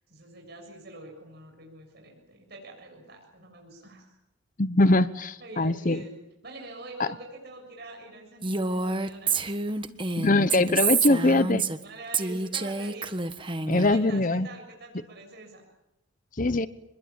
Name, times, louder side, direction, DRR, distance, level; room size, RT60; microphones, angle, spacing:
voice 1, 0.1-4.1 5.4-6.1 6.4-9.5 9.7-9.9 11.8-13.1 13.6-15.6, right 2 dB, 50° right, 2 dB, 7.1 m, -45 dB
voice 2, 4.6-6.0 7.0-7.1 10.2-11.6 13.7-14.5 16.4-16.7, left 2 dB, 40° left, 12 dB, 0.9 m, -22 dB
Female speech woman speaking, 8.4-11.8 12.1-13.9, right 4 dB, 25° right, 1.3 m, -28 dB
26.0 x 21.5 x 8.9 m, 0.85 s
head